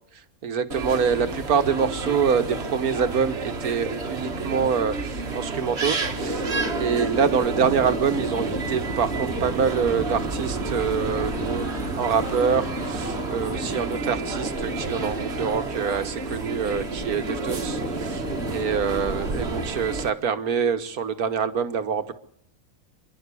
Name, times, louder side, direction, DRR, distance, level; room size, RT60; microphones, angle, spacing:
voice 1, 0.4-6.5 6.7-11.7 12.0-22.1, right 6 dB, 85° right, 10 dB, 1.8 m, -25 dB
sound 1, 0.7-20.1, right 3 dB, 50° right, 1.8 m, -31 dB
sound 2, 1.6-8.0, right 1 dB, 45° left, 3.6 m, -44 dB
sound 3, 6.2-19.7, right 1 dB, 10° left, 4.1 m, -32 dB
29.0 x 11.5 x 8.4 m, 0.68 s
omnidirectional pair, 1.5 m